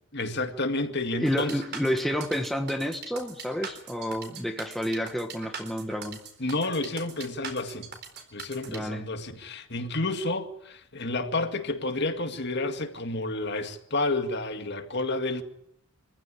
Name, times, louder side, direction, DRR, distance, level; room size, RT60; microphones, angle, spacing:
voice 1, 0.1-1.6 6.4-7.9 8.3-15.4, left 2 dB, 50° left, 2.1 m, -30 dB
voice 2, 1.2-6.2 8.7-9.1, equal, ahead, 1.4 m, -30 dB
sound 1, 1.3-8.8, right 5 dB, 45° right, 4.0 m, -41 dB
25.0 x 15.5 x 10.0 m
head